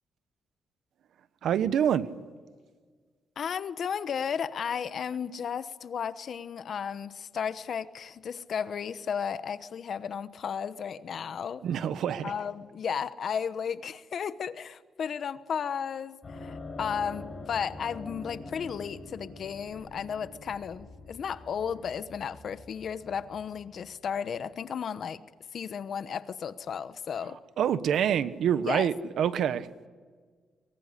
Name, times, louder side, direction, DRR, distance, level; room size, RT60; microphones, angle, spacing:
voice 1, 1.4-2.1 11.6-12.3 27.6-29.7, right 9 dB, 75° right, 1.2 m, -26 dB
voice 2, 3.4-11.6 12.2-25.2 25.5-27.4 28.6-28.9, left 7 dB, 55° left, 1.1 m, -34 dB
sound 1, 16.2-24.6, left 2 dB, 30° left, 5.5 m, -45 dB
24.0 x 23.0 x 9.9 m
cardioid pair, 140°, 0 cm